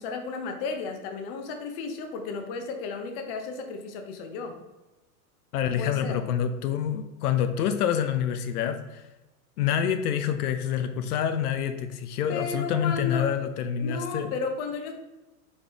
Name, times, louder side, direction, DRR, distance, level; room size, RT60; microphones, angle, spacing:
voice 1, 0.0-4.6 5.6-6.2 12.3-13.3 13.8-14.9, left 4 dB, 40° left, 5 dB, 0.7 m, -33 dB
voice 2, 5.5-9.0 9.6-14.3, left 9 dB, 85° left, 9 dB, 0.6 m, -27 dB
4.3 x 3.4 x 3.4 m, 1.0 s
supercardioid pair, 145°, 44 cm